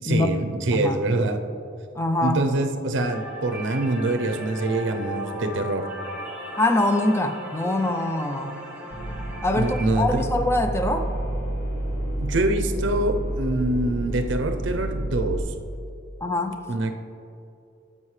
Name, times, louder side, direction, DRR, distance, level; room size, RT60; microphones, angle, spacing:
voice 1, 0.0-1.4 2.2-5.9 9.5-10.3 12.2-15.4 16.7-17.0, right 2 dB, 65° right, 7 dB, 0.6 m, -25 dB
voice 2, 2.0-2.4 6.6-8.6 9.4-11.1 16.2-16.6, left 2 dB, 15° left, 7 dB, 0.4 m, -24 dB
sound 1, 3.0-9.9, right 1 dB, 5° right, 1.2 m, -37 dB
sound 2, 8.9-15.4, right 1 dB, 40° left, 1.2 m, -29 dB
13.0 x 5.5 x 3.2 m, 2.6 s
head